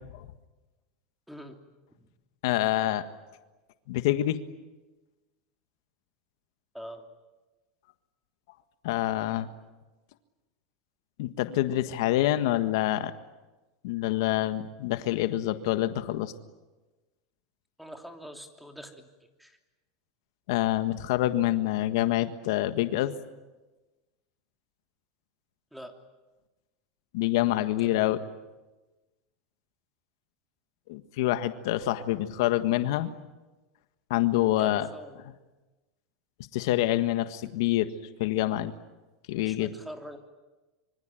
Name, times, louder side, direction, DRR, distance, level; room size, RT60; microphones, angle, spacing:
voice 1, 2.4-3.0 3.9-4.4 8.8-9.5 11.2-13.1 13.8-16.3 20.5-23.1 27.1-28.2 30.9-33.1 34.1-34.9 36.5-37.9 38.2-38.7 39.3-39.7, left 14 dB, 75° left, 10 dB, 1.6 m, -26 dB
voice 2, 6.7-7.0 17.8-19.1 19.4-19.6 25.7-26.0 27.8-28.3 34.6-35.2 39.3-40.2, equal, ahead, 5 dB, 3.1 m, -44 dB
26.0 x 24.5 x 9.2 m, 1.1 s
supercardioid pair, 130°, 2 cm